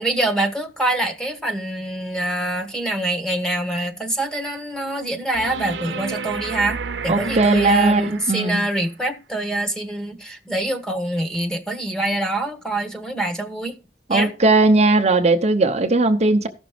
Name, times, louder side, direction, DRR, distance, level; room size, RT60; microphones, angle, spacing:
voice 1, 0.0-13.8 14.1-14.3, right 1 dB, 5° left, 1.3 m, -25 dB
sound 1, 5.3-8.7 11.3-11.4, right 4 dB, 85° right, 0.8 m, -31 dB
voice 2, 7.1-8.6 14.1-16.5, right 2 dB, 40° right, 0.8 m, -17 dB
14.5 x 6.1 x 5.0 m
head